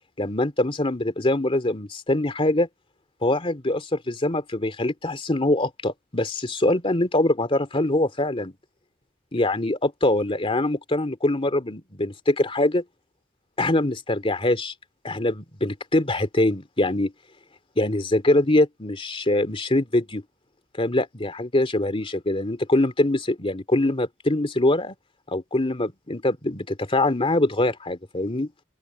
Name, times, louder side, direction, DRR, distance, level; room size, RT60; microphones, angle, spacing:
voice 1, 0.2-2.7 3.2-8.5 9.3-12.8 13.6-14.7 15.0-17.1 17.8-20.2 20.8-24.9 25.3-28.5, left 1 dB, 30° left, 2.5 m, -23 dB
open air
head